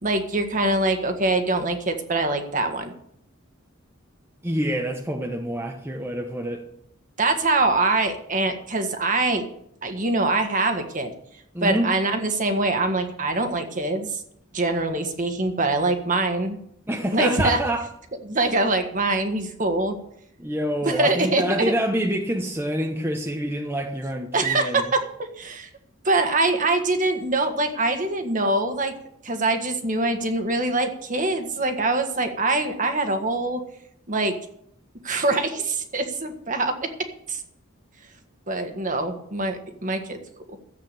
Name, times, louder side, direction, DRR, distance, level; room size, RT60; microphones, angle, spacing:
voice 1, 0.0-2.9 7.2-9.5 9.8-11.1 11.6-14.2 14.5-16.6 17.1-17.6 18.3-19.9 20.8-21.4 24.3-25.7 26.0-28.9 29.2-33.6 34.1-34.3 35.0-36.7 37.3-37.4 38.5-40.2 40.5-40.6, right 2 dB, 40° right, 5 dB, 1.7 m, -24 dB
voice 2, 4.4-6.6 11.5-11.9 16.9-17.9 20.4-24.8, right 1 dB, 10° right, 2 dB, 1.0 m, -26 dB
13.5 x 8.2 x 6.9 m, 0.71 s
head